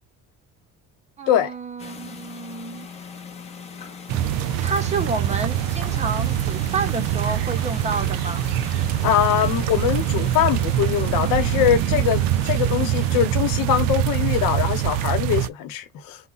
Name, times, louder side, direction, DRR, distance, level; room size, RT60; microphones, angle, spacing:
voice 1, 1.2-2.9 4.6-8.4, right 4 dB, 20° right, 0.6 m, -29 dB
sound 1, 1.8-13.3, left 5 dB, 20° left, 0.6 m, -40 dB
sound 2, 4.1-15.5, right 12 dB, 85° right, 0.5 m, -24 dB
voice 2, 9.0-16.2, left 10 dB, 85° left, 1.0 m, -22 dB
4.1 x 2.2 x 3.9 m
cardioid pair, 180°, 33 cm